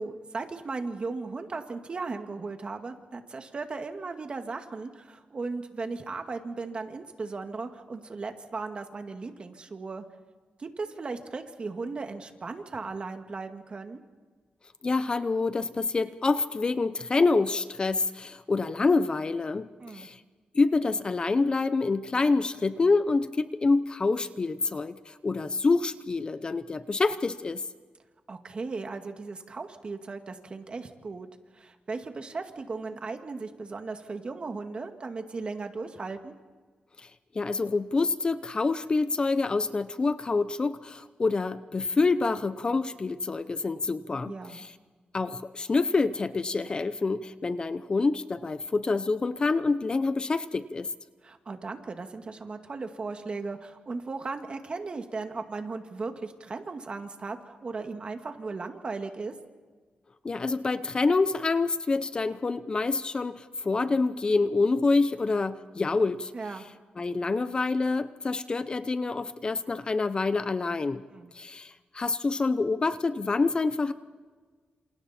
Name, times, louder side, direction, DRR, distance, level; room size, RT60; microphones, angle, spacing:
voice 1, 0.0-10.0 10.6-14.0 19.8-20.1 28.3-31.3 31.5-36.4 44.3-44.6 51.2-59.3 66.3-66.7 71.1-71.3, right 4 dB, 40° right, 6 dB, 2.1 m, -37 dB
voice 2, 14.8-19.7 19.9-20.2 20.5-27.6 37.0-37.1 37.3-44.7 45.1-50.9 60.2-66.3 67.0-71.0 71.3-73.9, left 3 dB, 30° left, 13 dB, 0.8 m, -27 dB
28.5 x 27.5 x 4.4 m, 1.4 s
wide cardioid pair, 115°, 3 cm